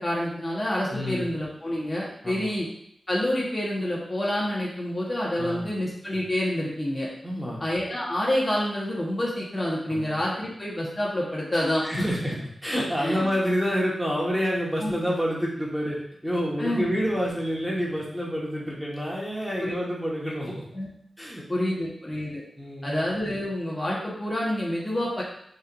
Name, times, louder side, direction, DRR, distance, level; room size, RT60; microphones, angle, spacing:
voice 1, 0.0-2.7 3.1-7.1 7.6-12.2 13.0-13.3 14.8-14.9 16.6-16.8 19.6-19.7 20.7-20.9 21.5-22.4 22.8-25.2, left 1 dB, 35° left, -5 dB, 1.4 m, -28 dB
voice 2, 0.9-1.3 2.2-2.5 5.4-5.7 7.2-7.6 9.9-10.2 11.8-12.3 12.6-16.0 16.2-20.6 21.2-21.9 22.6-23.0, equal, ahead, -5 dB, 1.4 m, -28 dB
5.4 x 3.3 x 2.6 m, 0.69 s
cardioid pair, 45°, 0 cm